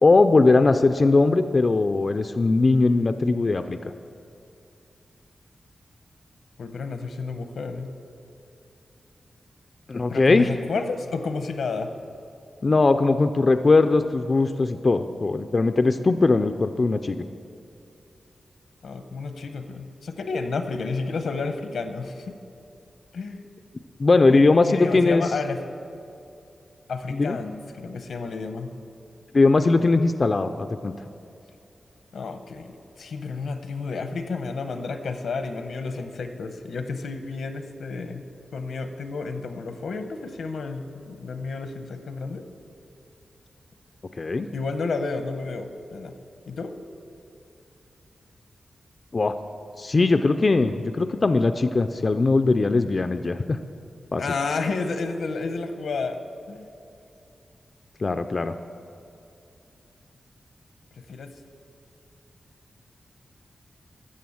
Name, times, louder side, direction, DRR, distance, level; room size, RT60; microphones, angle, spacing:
voice 1, 0.0-3.8 9.9-10.5 12.6-17.2 24.0-25.2 27.1-27.4 29.3-30.9 44.2-44.5 49.1-49.3 49.8-53.6 54.1-54.2 58.0-58.5, left 3 dB, 35° left, 9 dB, 0.3 m, -20 dB
voice 2, 6.6-7.9 10.0-11.9 18.8-22.4 23.1-23.4 24.3-25.6 26.9-28.7 32.1-38.3 38.5-42.4 44.5-46.1 46.5-46.7 54.2-56.2 56.5-56.7 61.1-61.3, left 4 dB, 80° left, 8 dB, 0.8 m, -31 dB
13.5 x 7.5 x 7.1 m, 2.6 s
wide cardioid pair, 170°, 0 cm